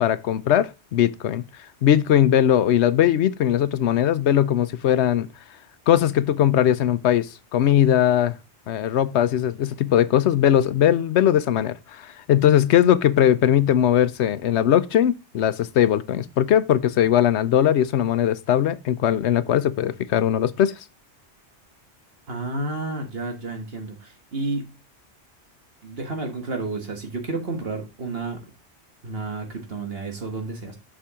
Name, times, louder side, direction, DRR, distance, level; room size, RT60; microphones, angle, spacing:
voice 1, 0.0-1.4 1.8-5.3 5.9-8.4 8.7-12.0 12.3-20.7, left 10 dB, 80° left, 0.9 m, -20 dB
voice 2, 22.3-24.8 25.8-28.4 29.0-30.8, right 3 dB, 60° right, 1.6 m, -31 dB
7.1 x 6.1 x 3.6 m
omnidirectional pair, 1.2 m